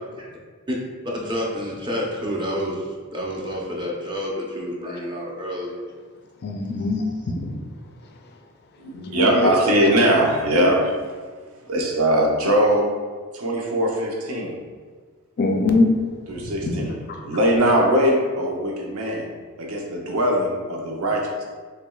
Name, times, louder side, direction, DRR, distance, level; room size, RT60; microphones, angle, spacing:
voice 1, 1.1-5.8, equal, 20° right, -2 dB, 0.6 m, -29 dB
voice 2, 6.4-7.5 8.9-9.5 15.4-15.9, left 3 dB, 50° left, 3 dB, 0.4 m, -22 dB
voice 3, 8.8-11.0 11.7-12.9 13.3-14.5 16.3-17.0 17.2-19.3 19.6-21.4, right 1 dB, 80° right, 0 dB, 0.7 m, -21 dB
6.0 x 2.2 x 2.3 m, 1.5 s
head